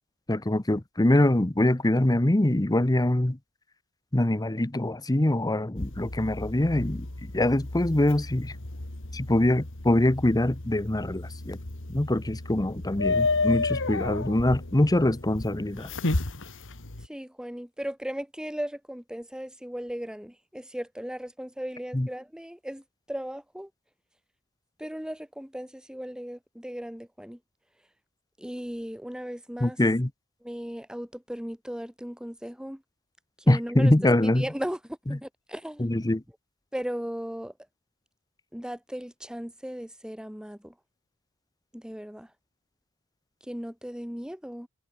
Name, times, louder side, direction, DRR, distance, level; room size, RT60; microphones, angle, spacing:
voice 1, 0.3-3.4 4.1-7.1 7.3-8.5 9.1-11.6 11.9-15.9 21.9-22.1 29.6-30.1 33.5-34.5 35.1-35.2 35.8-36.2, left 1 dB, 15° left, 0.9 m, -24 dB
sound 1, 5.8-17.1, left 3 dB, 60° left, 2.1 m, -32 dB
voice 2, 17.0-22.8 23.1-23.7 24.8-27.4 28.4-29.8 30.4-32.8 33.4-33.9 34.4-35.8 36.7-37.5 38.5-40.7 41.7-42.3 43.4-44.7, equal, 5° right, 1.9 m, -37 dB
head